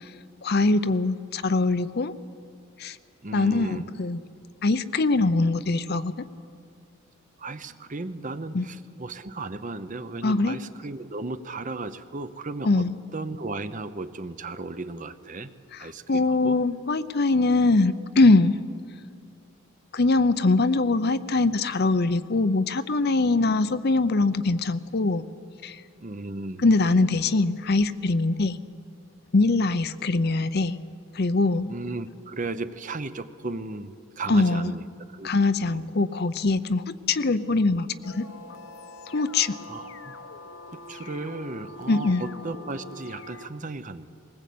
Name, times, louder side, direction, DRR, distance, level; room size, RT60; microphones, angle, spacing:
voice 1, 0.4-2.1 2.8-3.0 3.3-4.2 4.6-6.2 8.5-8.6 10.2-10.6 12.6-12.9 16.1-18.6 19.9-25.2 25.6-25.8 26.6-28.6 29.3-30.8 31.1-31.7 34.3-34.7 35.2-38.3 39.1-39.6 41.9-42.2, left 3 dB, 50° left, 13 dB, 0.6 m, -22 dB
voice 2, 3.2-3.9 7.4-12.8 13.1-15.5 15.8-16.6 26.0-26.6 31.7-33.9 34.2-34.8 35.1-35.3 35.6-35.9 39.7-40.1 40.7-44.0, right 3 dB, 35° right, 12 dB, 0.7 m, -35 dB
sound 1, 38.0-43.5, left 2 dB, 65° left, 1.0 m, -43 dB
20.5 x 19.5 x 8.5 m, 2.3 s
head